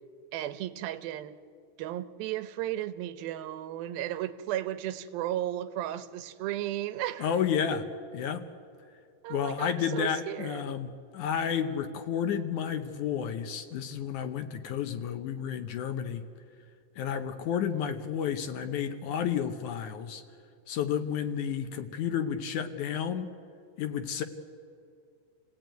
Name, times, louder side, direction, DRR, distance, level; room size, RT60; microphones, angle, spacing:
voice 1, 0.3-1.3 1.8-7.3 9.2-10.8, right 13 dB, 90° right, 12 dB, 2.7 m, -34 dB
voice 2, 7.2-7.9 8.1-8.4 9.3-16.3 17.0-20.2 20.7-23.3 23.8-24.2, left 8 dB, 70° left, 8 dB, 2.1 m, -31 dB
28.0 x 17.0 x 9.1 m, 2.4 s
omnidirectional pair, 4.1 m